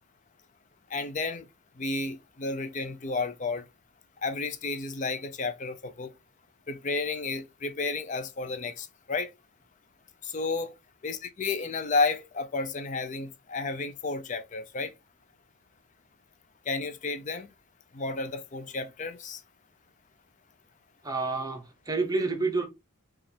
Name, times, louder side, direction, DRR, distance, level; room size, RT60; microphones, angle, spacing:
voice 1, 0.9-1.4 1.8-3.6 4.2-6.1 6.7-9.3 10.2-10.7 11.0-14.9 16.7-17.5 17.9-19.4, left 3 dB, 35° left, 0.4 m, -32 dB
voice 2, 21.0-22.7, right 3 dB, 15° right, 0.7 m, -29 dB
4.9 x 2.4 x 3.2 m
head